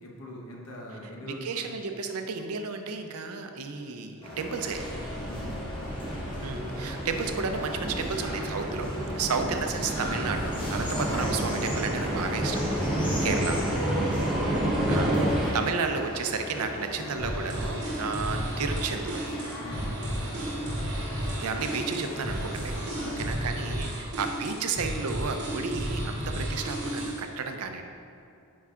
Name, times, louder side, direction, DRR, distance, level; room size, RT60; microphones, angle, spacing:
voice 1, 0.0-1.6 5.2-5.7 9.1-9.4 10.8-11.0 13.7-14.7 19.5-20.0 22.9-23.6 23.8-24.2, equal, 70° left, -1 dB, 0.9 m, -43 dB
voice 2, 1.2-4.8 6.4-13.7 14.5-14.6 14.9-19.2 20.8-21.1 21.4-22.8 23.2-27.8, right 4 dB, 80° right, 5 dB, 0.5 m, -32 dB
sound 1, 4.2-23.3, equal, 20° left, 1.2 m, -38 dB
sound 2, 4.7-15.5, right 1 dB, ahead, 0.9 m, -30 dB
sound 3, 17.2-27.3, right 1 dB, 50° right, 1.1 m, -33 dB
9.7 x 4.7 x 2.4 m, 2.6 s
head